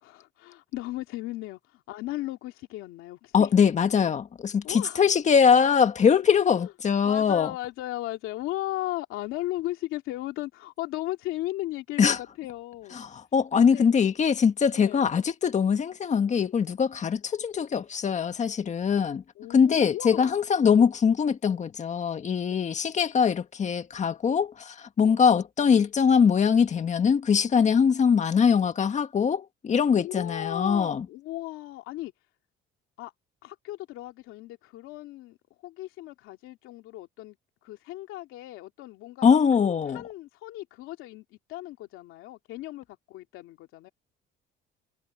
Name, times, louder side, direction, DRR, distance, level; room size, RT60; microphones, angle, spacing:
voice 1, 0.0-3.5 4.6-5.0 6.5-6.7 7.0-13.0 13.7-13.9 14.8-15.0 19.4-20.4 22.5-22.7 25.0-25.2 30.0-32.1 33.0-33.1 33.4-35.4 35.6-37.4 37.6-43.9, left 16 dB, 85° left, 2.7 m, -36 dB
voice 2, 3.3-7.5 12.0-12.2 13.0-19.2 19.5-31.1 39.2-40.0, left 6 dB, 35° left, 1.8 m, -22 dB
cardioid pair, 125°, 21 cm